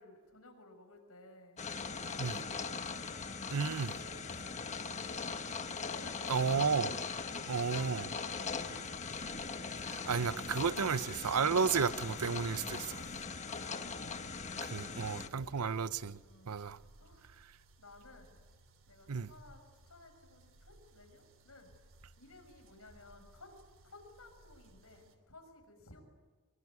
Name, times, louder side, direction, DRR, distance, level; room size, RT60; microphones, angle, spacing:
voice 1, 0.0-1.6 2.0-2.8 3.4-6.8 7.2-9.3 13.5-17.3 17.8-18.4 18.9-21.8 22.2-23.5 23.8-26.0, left 2 dB, 70° left, 6.1 m, -57 dB
sound 1, 1.6-15.3, left 5 dB, 30° left, 1.4 m, -40 dB
voice 2, 3.5-3.9 6.3-6.9 7.5-8.0 9.9-13.0 14.7-16.2 16.5-16.8 19.1-19.3, right 5 dB, 80° right, 0.8 m, -32 dB
sound 2, 8.4-25.2, right 2 dB, 60° right, 3.0 m, -62 dB
23.5 x 23.5 x 9.6 m
head